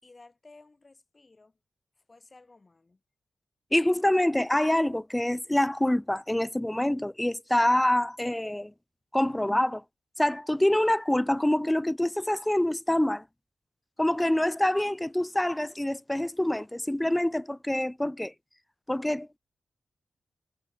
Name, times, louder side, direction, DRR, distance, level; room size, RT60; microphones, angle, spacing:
voice 1, 0.0-1.6 2.0-3.0, left 3 dB, 25° left, 5.5 m, -55 dB
voice 2, 3.7-8.7 9.1-9.8 10.2-13.2 14.0-18.3 18.9-19.4, left 1 dB, 5° left, 0.4 m, -26 dB
wide cardioid pair, 175°, 0 cm